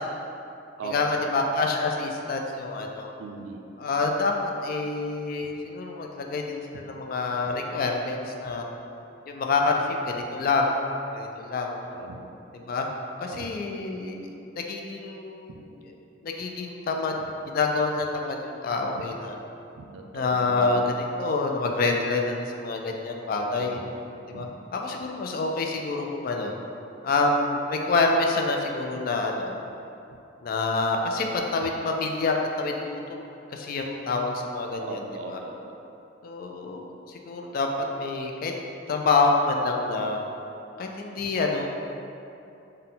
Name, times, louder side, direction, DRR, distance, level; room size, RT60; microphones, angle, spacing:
voice 1, 0.8-3.1 3.8-8.7 9.3-10.8 11.1-11.8 12.5-12.9 13.2-14.3 14.6-15.9 16.2-17.2 17.4-19.4 20.1-23.8 24.3-26.5 27.0-29.5 30.4-33.3 33.5-35.4 36.2-37.7 38.0-38.5 38.9-40.2 40.8-41.7, left 3 dB, 50° left, 1 dB, 0.3 m, -27 dB
voice 2, 3.2-3.7 11.9-12.3 13.3-13.5 17.2-17.3 19.8-20.8 23.5-23.9 24.3-24.5 34.8-35.5, right 4 dB, 90° right, 3 dB, 0.4 m, -39 dB
3.8 x 2.1 x 3.8 m, 2.8 s
head